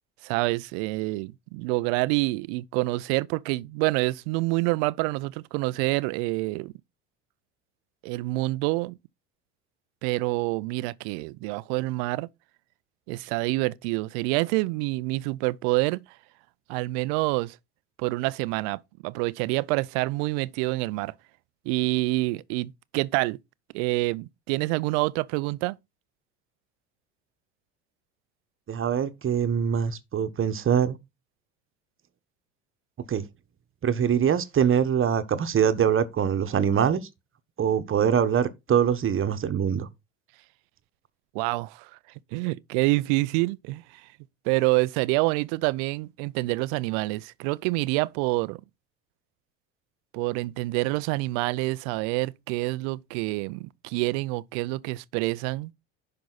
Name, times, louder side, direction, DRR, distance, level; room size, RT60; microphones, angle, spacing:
voice 1, 0.2-6.7 8.0-8.9 10.0-12.3 13.1-16.0 16.7-17.6 18.0-21.1 21.7-23.4 23.7-25.8 41.3-41.9 42.3-44.0 44.5-48.6 50.1-55.7, right 22 dB, 70° right, 0.6 m, -27 dB
voice 2, 28.7-31.0 33.1-33.2 33.8-37.1 37.6-39.9, right 8 dB, 35° right, 1.3 m, -23 dB
10.5 x 5.7 x 4.0 m
hypercardioid pair, 75°, 36 cm